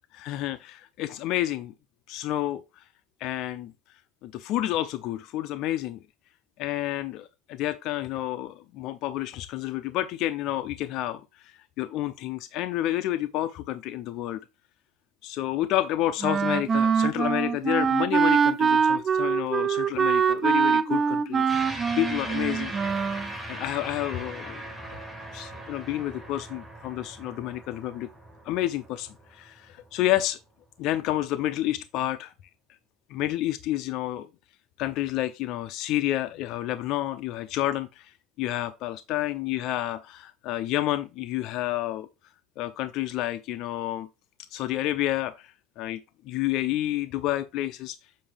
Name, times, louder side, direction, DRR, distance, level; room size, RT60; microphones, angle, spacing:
voice 1, 0.1-1.7 2.1-2.8 3.2-3.7 4.2-6.0 6.6-14.4 15.2-21.5 22.0-22.7 23.5-24.7 25.3-28.1 28.4-30.4 30.8-32.3 33.1-34.3 34.8-38.1 38.4-42.1 42.6-44.1 44.5-46.0 46.3-48.0, left 14 dB, 60° left, 0.5 m, -29 dB
Wind instrument woodwind instrument, 16.2-23.3, right 6 dB, 30° right, 0.4 m, -24 dB
sound 1, 21.5-30.2, right 1 dB, ahead, 1.6 m, -39 dB
7.5 x 4.8 x 3.4 m
cardioid pair, 130°, 0 cm